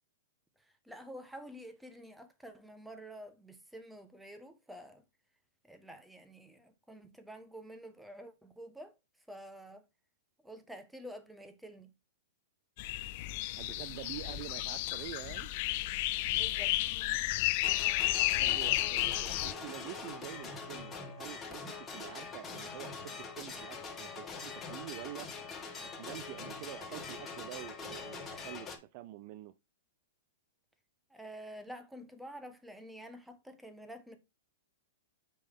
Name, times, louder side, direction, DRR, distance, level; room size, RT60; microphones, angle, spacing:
voice 1, 0.6-5.0 5.6-9.0 9.3-9.9 10.4-11.9 16.3-16.8 17.1-17.2 31.1-34.2, equal, 5° right, 1.2 m, -49 dB
sound 1, 12.8-19.5, left 17 dB, 50° left, 0.4 m, -32 dB
voice 2, 13.6-15.5 18.4-25.3 26.0-29.5, right 14 dB, 45° right, 0.4 m, -46 dB
sound 2, 17.6-28.8, left 4 dB, 20° left, 1.5 m, -44 dB
5.4 x 5.3 x 3.5 m
hypercardioid pair, 120°, 0 cm